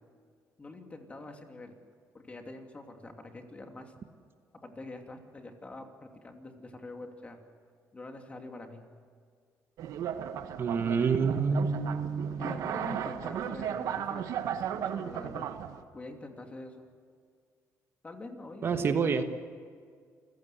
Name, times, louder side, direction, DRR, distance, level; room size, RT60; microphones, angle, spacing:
voice 1, 0.6-1.8 2.1-3.9 4.6-7.4 7.9-8.8 11.0-11.2 12.4-15.5 15.9-16.9 18.0-18.7 19.0-19.2, left 2 dB, 20° left, 4 dB, 2.8 m, -45 dB
sound 1, 9.8-15.8, right 9 dB, 75° right, 1.3 m, -35 dB
voice 2, 10.6-12.4 18.6-19.2, right 5 dB, 45° right, 8 dB, 1.3 m, -28 dB
28.5 x 16.0 x 8.1 m, 2.1 s
cardioid pair, 115°, 6 cm